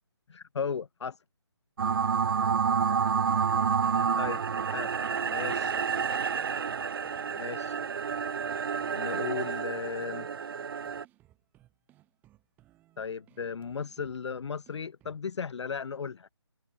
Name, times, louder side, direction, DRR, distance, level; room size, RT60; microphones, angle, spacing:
voice 1, 0.3-1.2 4.2-4.4 4.7-4.9 5.2-5.7 7.3-7.8 8.9-10.3 13.0-16.3, left 6 dB, 80° left, 0.4 m, -35 dB
sound 1, 1.8-11.0, right 6 dB, 55° right, 0.4 m, -29 dB
voice 2, 3.2-4.8, left 14 dB, 10° left, 3.9 m, -64 dB
sound 2, 5.3-15.3, right 15 dB, 10° right, 4.7 m, -63 dB
open air
figure-of-eight pair, 160°, 15 cm